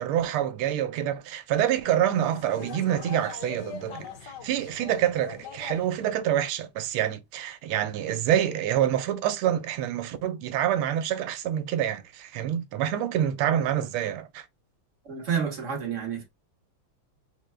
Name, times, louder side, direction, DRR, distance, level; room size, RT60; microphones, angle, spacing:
voice 1, 0.0-14.4, right 11 dB, 85° right, 1.5 m, -27 dB
sound 1, 2.1-6.3, left 6 dB, 60° left, 1.3 m, -42 dB
voice 2, 15.0-16.2, right 7 dB, 45° right, 1.1 m, -29 dB
5.4 x 2.1 x 3.2 m
omnidirectional pair, 2.3 m